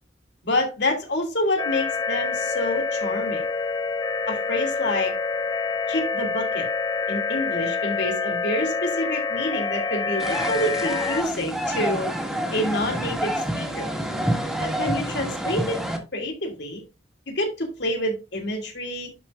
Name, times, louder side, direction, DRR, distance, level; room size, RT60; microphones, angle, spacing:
voice 1, 0.4-3.4 4.3-5.2 5.9-6.7 7.1-12.1 12.5-13.9 14.6-15.8 16.1-16.8 17.3-19.2, left 1 dB, 70° left, 2 dB, 2.6 m, -27 dB
sound 1, 1.6-11.2, left 4 dB, 20° left, 0.3 m, -27 dB
sound 2, 10.2-16.0, equal, ahead, 1.6 m, -28 dB
11.0 x 5.2 x 2.5 m, 0.26 s
head